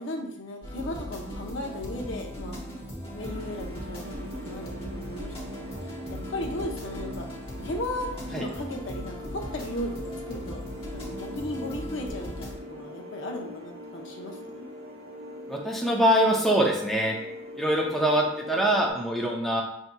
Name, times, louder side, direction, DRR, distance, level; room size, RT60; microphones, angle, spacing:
voice 1, 0.0-2.6 3.1-7.3 7.6-10.0 10.3-10.6 10.9-14.7, left 1 dB, 70° left, 1 dB, 0.7 m, -36 dB
sound 1, 0.6-12.5, equal, 30° left, 1.0 m, -38 dB
sound 2, 3.2-18.9, left 1 dB, 65° right, 0.7 m, -42 dB
voice 2, 15.5-17.1 17.6-19.6, right 1 dB, ahead, -2 dB, 0.5 m, -24 dB
5.9 x 2.7 x 2.2 m, 0.71 s
head